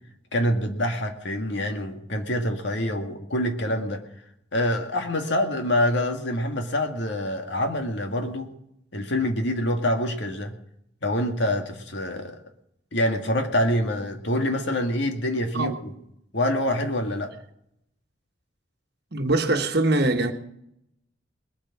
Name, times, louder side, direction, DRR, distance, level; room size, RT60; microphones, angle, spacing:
voice 1, 0.3-4.0 4.5-8.5 8.9-10.5 11.0-12.4 12.9-15.9 16.3-17.3, left 1 dB, 65° left, 2.0 m, -26 dB
voice 2, 19.1-20.3, right 2 dB, 55° right, 1.4 m, -22 dB
20.5 x 9.0 x 6.0 m
head